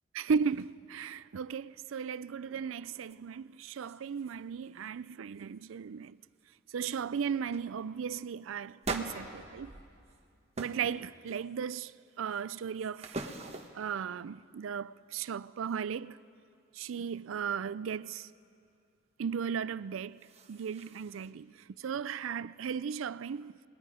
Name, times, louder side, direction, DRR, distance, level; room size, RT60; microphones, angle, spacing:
voice 1, 0.1-6.2 6.7-9.7 10.6-11.9 12.2-13.2 13.7-16.2 16.8-18.3 19.2-20.2 20.5-21.5 21.8-23.5, right 6 dB, 80° right, 0.4 m, -36 dB
sound 1, 3.1-3.2 3.5-4.4 4.6-5.0 5.3-5.8 6.4-6.5 6.8-7.0 7.5-7.7 8.8-10.2 10.5-10.9 11.3-11.8 12.3-13.9 19.9-21.3, right 3 dB, 30° right, 1.1 m, -43 dB
28.0 x 19.5 x 5.0 m
head